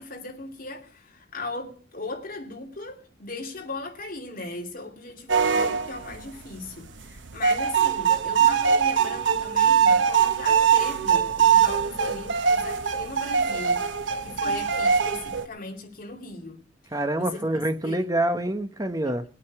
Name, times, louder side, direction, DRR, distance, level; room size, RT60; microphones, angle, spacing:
voice 1, 0.0-13.9 14.2-16.6 17.2-18.1, left 3 dB, 50° left, 2.7 m, -38 dB
sound 1, 5.3-6.2 6.5-15.5, right 7 dB, 85° right, 1.0 m, -22 dB
voice 2, 16.9-19.2, right 1 dB, 20° right, 1.0 m, -26 dB
19.0 x 8.8 x 4.7 m
head